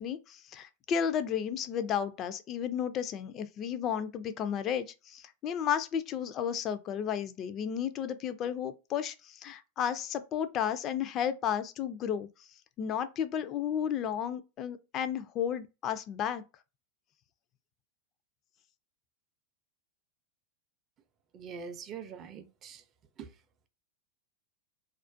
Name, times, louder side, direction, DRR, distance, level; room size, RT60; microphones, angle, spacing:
voice 1, 0.0-12.3 12.8-16.4, left 8 dB, 40° left, 0.3 m, -33 dB
voice 2, 21.3-22.8 23.2-23.3, right 6 dB, 35° right, 0.4 m, -43 dB
2.4 x 2.1 x 2.5 m
hypercardioid pair, 100°, 0 cm